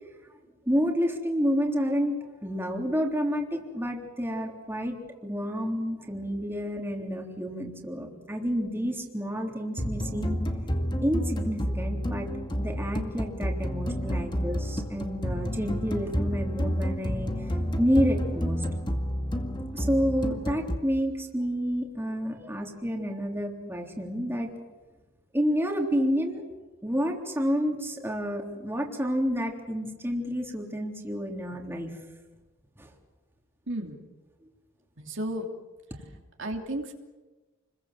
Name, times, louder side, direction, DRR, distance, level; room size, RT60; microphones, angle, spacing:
voice 1, 0.7-10.4 11.0-12.3 12.6-18.6 19.7-24.5 25.3-26.4 26.8-32.0 32.8-32.9, equal, 10° right, 0 dB, 3.5 m, -29 dB
sound 1, 9.8-20.8, equal, 20° left, 2.2 m, -30 dB
voice 2, 33.7-34.0 35.0-35.5 36.4-36.9, right 1 dB, 60° right, 2 dB, 3.1 m, -33 dB
29.5 x 22.5 x 7.6 m, 1.2 s
head